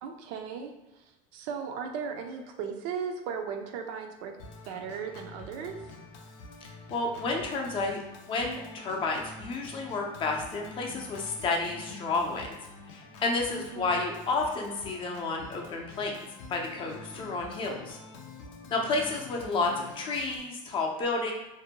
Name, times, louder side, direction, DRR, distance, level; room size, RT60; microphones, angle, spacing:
voice 1, 0.0-0.7 1.3-4.3 4.7-5.8 13.5-14.0, right 6 dB, 70° right, 5 dB, 0.4 m, -36 dB
Organ, 4.4-20.4, left 3 dB, 85° left, 0.5 m, -47 dB
voice 2, 6.6-8.0 8.3-12.5 12.9-16.1 16.5-18.0 18.7-21.3, left 3 dB, 30° left, 1 dB, 0.5 m, -31 dB
2.5 x 2.1 x 2.8 m, 1.0 s
supercardioid pair, 135°, 16 cm